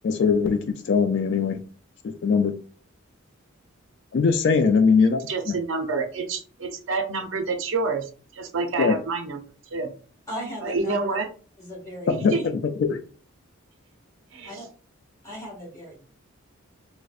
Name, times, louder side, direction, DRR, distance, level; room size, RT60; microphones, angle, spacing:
voice 1, 0.0-1.6 2.0-2.5 4.1-5.6 8.8-9.0 12.2-13.0, left 5 dB, 55° left, 7 dB, 0.3 m, -21 dB
voice 2, 5.3-9.4 9.7-9.9 10.6-11.3 12.1-12.4 14.3-14.6, right 4 dB, 65° right, 6 dB, 0.5 m, -28 dB
voice 3, 10.3-11.2 11.6-12.2 14.5-14.6 15.2-16.1, equal, 15° left, -4 dB, 1.5 m, -37 dB
4.8 x 2.1 x 2.3 m, 0.39 s
head